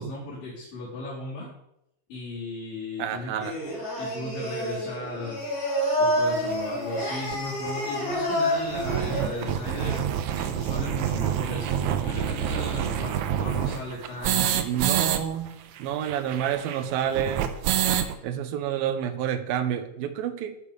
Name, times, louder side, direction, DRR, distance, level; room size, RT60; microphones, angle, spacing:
voice 1, 0.0-1.5 2.1-3.5 4.0-5.4 6.0-10.0 10.3-14.8, left 2 dB, 70° left, -10 dB, 5.8 m, -36 dB
voice 2, 3.0-3.6 14.6-17.6 18.2-20.6, right 9 dB, 90° right, 9 dB, 2.8 m, -29 dB
Singing, 3.4-10.0, equal, 25° left, 5.8 m, -28 dB
sound 1, 6.5-6.6 7.3-7.4 7.7-7.8 8.0-8.1 8.5-15.2 15.5-15.6 15.8-18.1, right 10 dB, 70° right, 2.0 m, -27 dB
13.5 x 8.9 x 5.2 m, 0.81 s
omnidirectional pair, 4.1 m